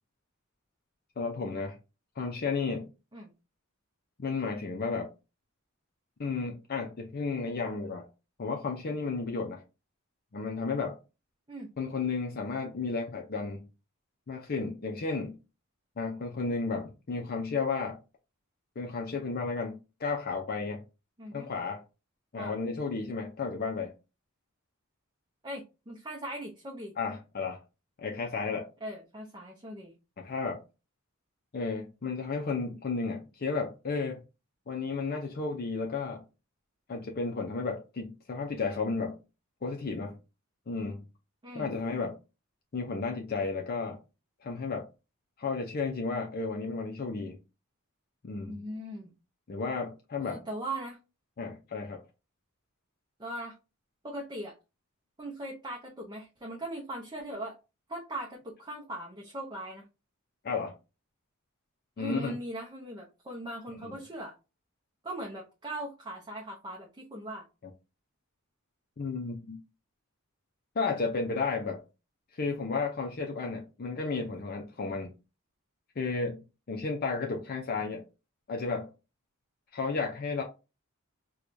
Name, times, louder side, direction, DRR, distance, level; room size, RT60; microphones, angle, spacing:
voice 1, 1.2-1.8 2.2-2.9 4.2-5.1 6.2-8.1 8.4-9.6 10.3-11.0 11.8-13.7 14.3-15.4 16.0-18.0 18.8-20.8 21.3-21.8 22.3-23.9 27.0-27.6 28.0-28.7 30.2-30.6 31.5-34.2 34.7-36.2 36.9-39.2 39.6-40.1 40.7-41.0 41.5-42.2 42.7-44.0 44.4-44.9 45.4-47.4 48.2-48.6 49.5-50.4 51.4-52.0 60.4-60.7 62.0-62.3 63.8-64.0 69.0-69.6 70.8-71.8 72.3-75.1 76.0-78.0 78.5-78.9 79.7-80.4, left 4 dB, 45° left, 0.5 m, -33 dB
voice 2, 21.2-21.5 22.3-22.6 25.4-26.9 28.8-29.9 41.4-41.7 48.5-49.1 50.2-51.0 53.2-53.6 54.0-54.6 55.2-57.6 57.9-59.8 62.0-64.3 65.0-67.4, right 1 dB, 20° right, 0.6 m, -39 dB
4.7 x 2.3 x 2.5 m
head